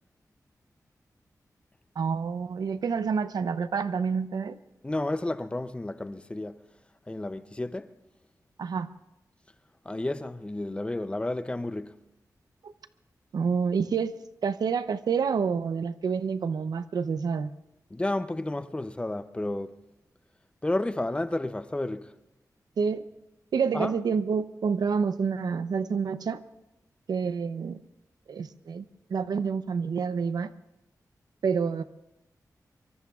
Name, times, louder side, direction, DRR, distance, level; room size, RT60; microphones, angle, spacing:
voice 1, 2.0-4.6 8.6-8.9 12.6-12.7 13.3-14.1 14.4-17.5 22.8-23.0 23.5-26.4 27.1-27.8 28.3-28.8 29.1-30.5 31.4-31.8, right 6 dB, 85° right, 0.6 m, -28 dB
voice 2, 4.8-6.7 7.1-7.9 9.8-12.0 17.9-19.8 20.6-22.2 23.7-24.0, left 2 dB, 15° left, 0.5 m, -31 dB
24.0 x 24.0 x 2.4 m
wide cardioid pair, 135°, 7 cm